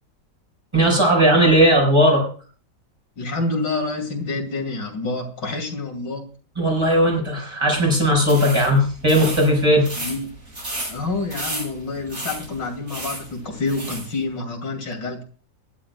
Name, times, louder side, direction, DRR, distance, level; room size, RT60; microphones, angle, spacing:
voice 1, 0.7-2.2 6.6-9.9, equal, 15° right, 1 dB, 5.4 m, -17 dB
voice 2, 3.2-6.2 10.0-10.3 10.9-15.2, left 3 dB, 85° left, 3 dB, 3.3 m, -28 dB
sound 1, 8.2-14.1, right 1 dB, 50° right, 7.7 m, -33 dB
23.5 x 11.5 x 2.3 m, 0.41 s
omnidirectional pair, 1.9 m